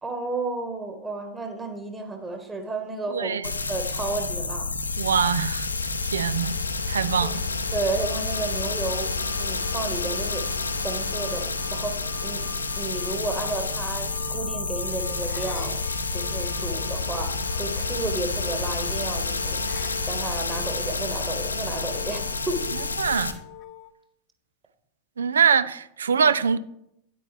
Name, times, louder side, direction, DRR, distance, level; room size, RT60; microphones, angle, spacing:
voice 1, 0.0-3.4 3.7-4.7 7.2-7.4 7.7-10.5 10.8-12.4 12.8-15.8 16.1-19.7 20.0-22.6, right 3 dB, 15° right, 1.5 m, -32 dB
voice 2, 3.1-3.5 5.0-5.7 6.0-6.6 6.9-7.4 23.0-23.4 25.2-26.6, right 6 dB, 70° right, 0.5 m, -23 dB
sound 1, 3.4-23.3, left 3 dB, 80° left, 0.8 m, -29 dB
sound 2, 8.0-23.9, left 12 dB, 35° left, 0.6 m, -44 dB
10.0 x 8.3 x 3.3 m
figure-of-eight pair, 90°, 0 cm